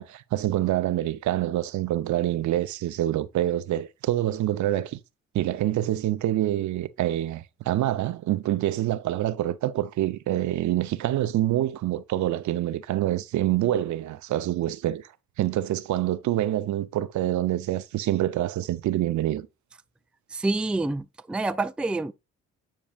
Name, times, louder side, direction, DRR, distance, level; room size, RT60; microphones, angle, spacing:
voice 1, 0.0-5.0 5.3-15.0 15.4-19.5, right 13 dB, 70° right, 0.6 m, -26 dB
voice 2, 20.3-22.1, right 2 dB, 5° right, 0.4 m, -27 dB
8.9 x 4.7 x 2.4 m
cardioid pair, 90°, 30 cm